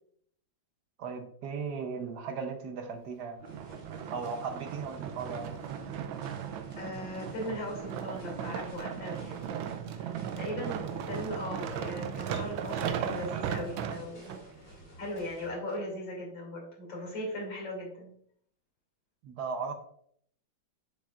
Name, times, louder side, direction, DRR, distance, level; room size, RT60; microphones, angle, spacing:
voice 1, 1.0-3.4 4.1-5.6 19.2-19.7, right 5 dB, 65° right, 6 dB, 1.3 m, -37 dB
sound 1, 3.4-15.5, right 1 dB, 45° left, 2.7 m, -53 dB
sound 2, 3.4-14.4 15.0-15.1, right 8 dB, 85° right, 1.4 m, -37 dB
voice 2, 6.7-9.6 10.0-14.4 15.0-18.2, left 1 dB, 75° left, -3 dB, 3.3 m, -38 dB
8.0 x 6.9 x 2.4 m, 0.64 s
omnidirectional pair, 2.1 m